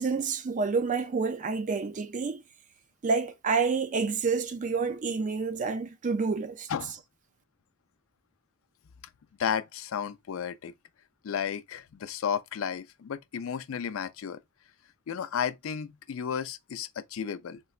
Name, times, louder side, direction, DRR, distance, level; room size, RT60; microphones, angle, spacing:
voice 1, 0.0-2.4 3.0-6.7, right 4 dB, 40° right, 0.4 m, -28 dB
voice 2, 9.4-10.7 11.2-14.4 15.1-17.6, left 7 dB, 80° left, 0.4 m, -33 dB
3.7 x 2.1 x 2.4 m
head